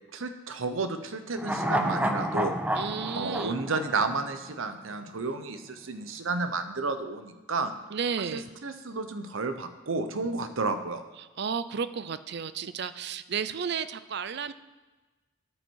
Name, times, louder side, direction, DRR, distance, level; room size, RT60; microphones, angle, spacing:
voice 1, 0.1-2.5 3.1-7.7 8.3-11.0, right 3 dB, 90° right, 9 dB, 0.9 m, -31 dB
sound 1, 1.4-4.8 5.1-5.2, right 1 dB, 5° right, 0.6 m, -30 dB
voice 2, 2.8-3.6 7.9-8.5 11.2-14.5, right 6 dB, 55° right, 14 dB, 0.5 m, -33 dB
11.0 x 8.8 x 4.7 m, 1.2 s
head